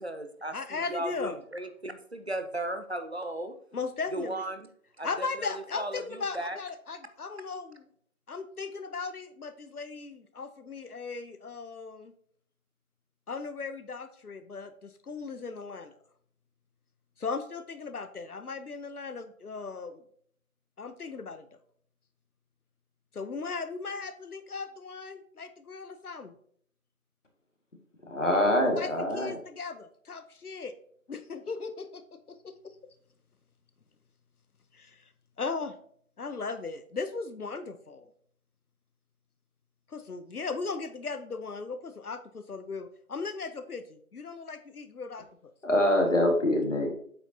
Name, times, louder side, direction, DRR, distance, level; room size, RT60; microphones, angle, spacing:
voice 1, 0.0-3.5 4.1-4.7 5.0-6.6, right 1 dB, 45° right, 8 dB, 0.6 m, -36 dB
voice 2, 0.5-1.4 3.7-4.5 5.0-7.9 8.3-12.1 13.3-16.0 17.2-20.0 20.8-21.5 23.1-26.3 28.7-30.7 31.1-32.7 34.7-35.0 35.4-35.8 36.2-38.1 39.9-45.3, left 4 dB, 90° left, 11 dB, 0.8 m, -37 dB
voice 3, 28.1-29.3 45.6-46.9, left 1 dB, 55° left, 2 dB, 1.8 m, -24 dB
8.0 x 5.7 x 2.7 m, 0.62 s
figure-of-eight pair, 165°, 43 cm